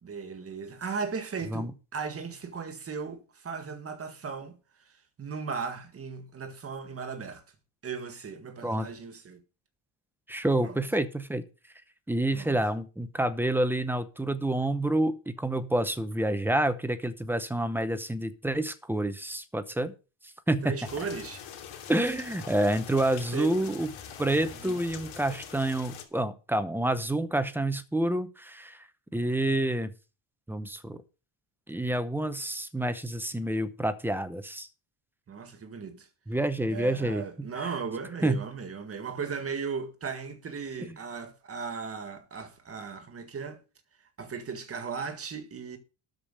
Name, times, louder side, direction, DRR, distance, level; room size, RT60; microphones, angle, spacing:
voice 1, 0.0-4.6 5.2-7.4 7.8-9.4 10.6-10.8 12.3-12.6 20.6-21.4 23.1-23.7 24.6-24.8 35.3-36.1 36.7-43.6 44.2-45.8, right 5 dB, 30° right, 1.7 m, -37 dB
voice 2, 10.3-11.4 12.1-19.9 20.2-20.8 21.9-23.9 24.2-29.9 30.5-31.0 31.7-34.7 36.3-37.5 38.2-38.4, right 1 dB, 5° right, 0.7 m, -28 dB
sound 1, 20.8-26.0, left 8 dB, 75° left, 3.0 m, -44 dB
13.0 x 5.2 x 6.5 m
cardioid pair, 170°, 48 cm